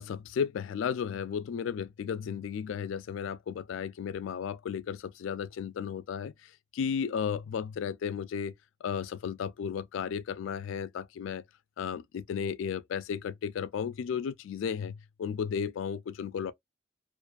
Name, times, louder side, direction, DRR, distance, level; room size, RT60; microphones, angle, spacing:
voice 1, 0.0-8.5 8.8-11.4 11.8-16.5, left 7 dB, 85° left, 0.3 m, -34 dB
2.4 x 2.4 x 2.2 m
head